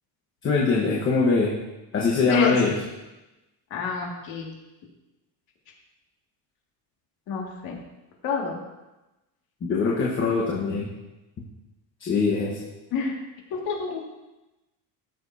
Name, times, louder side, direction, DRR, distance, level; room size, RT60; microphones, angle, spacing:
voice 1, 0.4-1.5 1.9-2.7 9.6-10.9 12.0-12.5, left 4 dB, 30° left, -4 dB, 1.2 m, -22 dB
voice 2, 3.7-4.5 7.3-7.8 8.2-8.6 12.9-13.2 13.5-14.0, left 5 dB, 55° left, -1 dB, 2.2 m, -28 dB
15.0 x 7.0 x 2.8 m, 1.0 s
cardioid pair, 175°, 42 cm